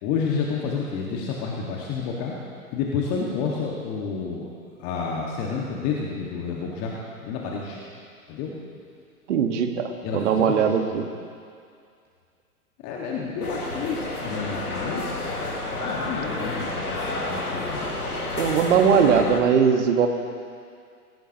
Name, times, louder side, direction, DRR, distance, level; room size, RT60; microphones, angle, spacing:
voice 1, 0.0-2.3 2.7-4.5 4.8-6.9 7.2-7.8 8.3-8.5 10.0-11.0 12.8-15.3 15.8-17.9, left 5 dB, 35° left, -3 dB, 1.9 m, -30 dB
voice 2, 9.3-11.0 18.4-20.1, right 7 dB, 55° right, 5 dB, 1.7 m, -20 dB
sound 1, 13.4-19.4, left 2 dB, 85° left, 2.1 m, -30 dB
19.5 x 17.5 x 3.0 m, 2.3 s
figure-of-eight pair, 110°, 44 cm